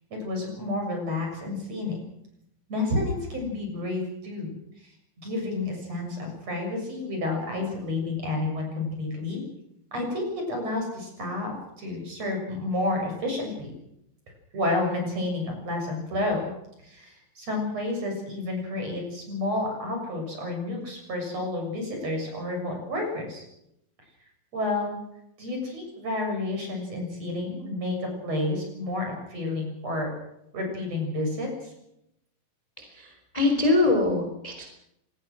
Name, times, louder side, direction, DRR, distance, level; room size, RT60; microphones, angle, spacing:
voice 1, 0.1-2.0 2.7-4.5 4.8-4.9 5.2-9.4 9.9-13.7 14.5-16.5 16.8-23.4 24.5-25.0 25.4-30.1 30.5-31.7, left 2 dB, 45° right, 2 dB, 8.1 m, -30 dB
voice 2, 32.8-34.7, left 2 dB, 10° left, 3 dB, 3.5 m, -24 dB
26.5 x 19.5 x 6.3 m, 0.79 s
omnidirectional pair, 4.0 m